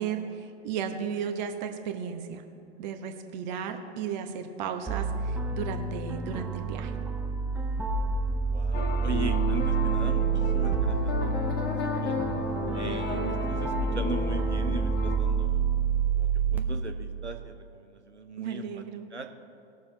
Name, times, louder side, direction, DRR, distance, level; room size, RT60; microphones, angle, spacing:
voice 1, 0.0-2.4 2.8-6.9 18.4-19.1, right 7 dB, 40° right, 6 dB, 1.1 m, -34 dB
sound 1, 4.9-16.6, right 5 dB, 5° right, 0.5 m, -28 dB
voice 2, 8.5-11.1 11.6-12.2 12.7-15.7 16.2-18.8 19.1-19.3, right 3 dB, 90° right, 6 dB, 1.0 m, -38 dB
sound 2, 8.7-15.2, left 3 dB, 30° left, 1.5 m, -33 dB
19.0 x 6.9 x 4.0 m, 2.6 s
figure-of-eight pair, 105°, 33 cm